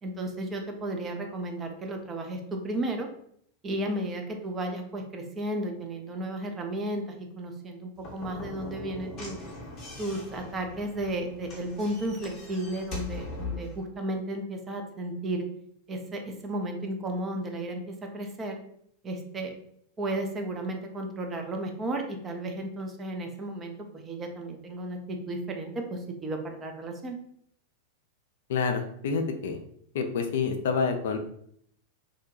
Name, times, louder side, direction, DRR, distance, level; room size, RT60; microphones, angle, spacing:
voice 1, 0.0-3.1 3.6-9.4 10.0-15.4 15.9-18.6 19.0-19.6 20.0-27.2, right 1 dB, 20° right, 3 dB, 0.5 m, -33 dB
Slam / Knock, 8.0-13.8, left 3 dB, 30° left, 0.8 m, -41 dB
voice 2, 28.5-29.6 29.9-31.2, left 5 dB, 55° left, 5 dB, 0.3 m, -28 dB
2.6 x 2.1 x 2.7 m, 0.67 s
figure-of-eight pair, 90°, 0 cm